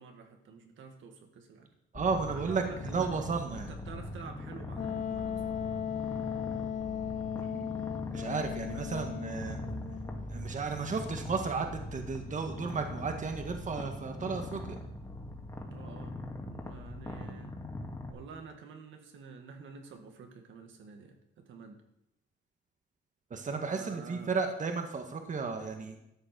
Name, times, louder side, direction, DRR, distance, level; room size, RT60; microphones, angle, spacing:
voice 1, 0.0-1.7 2.2-3.1 3.5-5.4 8.7-8.9 15.7-16.2 16.5-17.5 18.1-21.8 23.7-24.3, right 5 dB, 75° right, 4 dB, 2.2 m, -49 dB
Purr, 1.9-18.1, left 1 dB, 15° left, 2.4 m, -41 dB
voice 2, 1.9-3.7 7.4-7.7 8.1-9.6 10.3-14.8 23.3-26.0, right 4 dB, 40° right, 5 dB, 1.7 m, -34 dB
Wind instrument woodwind instrument, 4.8-10.3, left 9 dB, 40° left, 0.4 m, -37 dB
13.0 x 7.8 x 6.2 m, 0.84 s
cardioid pair, 90°, 20 cm